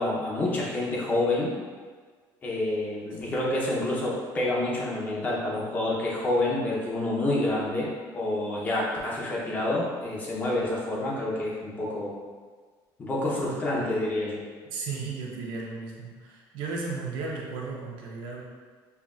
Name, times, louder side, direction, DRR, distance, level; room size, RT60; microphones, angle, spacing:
voice 1, 0.0-1.5 2.4-12.1 13.0-14.4, left 1 dB, 20° left, -5 dB, 0.7 m, -28 dB
voice 2, 14.7-18.4, right 4 dB, 70° right, -2 dB, 0.8 m, -35 dB
5.6 x 2.4 x 2.4 m, 1.5 s
cardioid pair, 170°, 8 cm